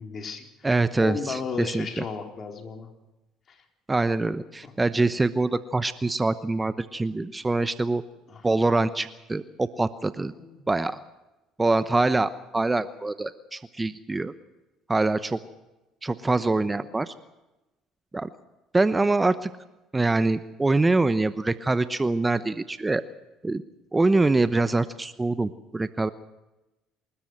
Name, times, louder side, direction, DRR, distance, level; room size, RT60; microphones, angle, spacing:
voice 1, 0.0-2.9 3.5-3.6 4.6-4.7 8.3-8.4 10.3-10.6, left 5 dB, 45° left, 4 dB, 4.0 m, -35 dB
voice 2, 0.6-2.0 3.9-8.0 8.4-10.3 10.7-11.0 11.6-14.3 14.9-15.4 16.0-17.1 18.1-18.3 18.7-19.5 19.9-23.0 23.4-23.6 23.9-26.1, right 2 dB, 20° right, 13 dB, 0.9 m, -24 dB
27.5 x 13.0 x 7.9 m, 1.0 s
hypercardioid pair, 70°, 0 cm